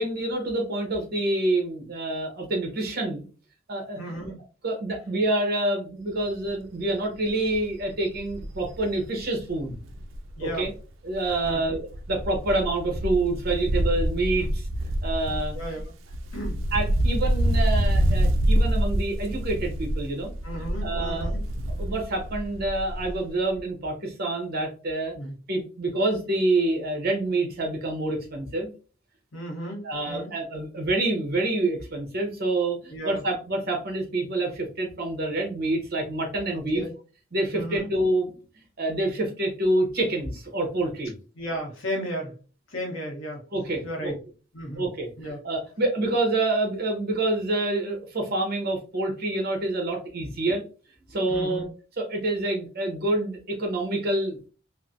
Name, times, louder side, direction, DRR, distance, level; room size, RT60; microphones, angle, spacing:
voice 1, 0.0-3.2 3.7-4.3 4.6-9.8 10.4-10.7 11.0-14.7 15.0-15.5 16.7-20.3 20.8-21.3 21.8-25.1 25.5-28.7 29.8-36.8 37.3-38.3 38.8-41.1 43.5-44.1 44.7-45.1 45.4-50.6 51.1-51.7 52.0-54.5, right 2 dB, 50° right, 2 dB, 1.0 m, -27 dB
voice 2, 4.0-4.4 10.4-10.7 11.4-11.7 15.5-15.8 16.3-16.6 20.4-21.4 25.1-25.4 29.3-30.3 32.9-33.2 36.5-36.9 37.5-37.9 41.3-42.4 42.7-43.4 43.8-44.2 44.5-44.8 45.2-45.4 51.3-51.7, equal, 85° left, 0 dB, 1.1 m, -34 dB
Wind, 6.2-6.5 6.9-7.0 7.3-10.8 11.1-23.3 23.5-23.6, right 1 dB, 70° right, 0.4 m, -27 dB
3.3 x 2.1 x 2.5 m, 0.36 s
head